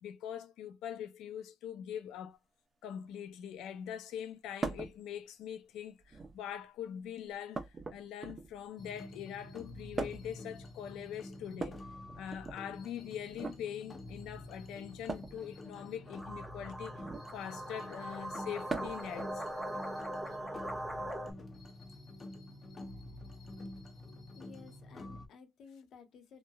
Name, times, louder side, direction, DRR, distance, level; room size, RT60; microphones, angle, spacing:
voice 1, 0.0-2.4 2.8-11.8 12.2-16.9 17.3-19.5, left 9 dB, 90° left, 0.4 m, -43 dB
sound 1, 4.6-4.9 6.0-6.5 7.5-8.6 10.0-10.4 11.5-12.6 13.3-13.6 15.1-15.4 16.9-17.3 18.7-19.1 20.6-20.7 21.9-22.0, right 3 dB, 30° right, 0.8 m, -40 dB
sound 2, 8.8-25.3, left 2 dB, 35° left, 0.7 m, -48 dB
sound 3, 16.1-21.3, right 1 dB, ahead, 0.9 m, -41 dB
voice 2, 24.3-26.4, left 5 dB, 70° left, 0.8 m, -55 dB
3.0 x 2.1 x 2.3 m
cardioid pair, 90°, 0 cm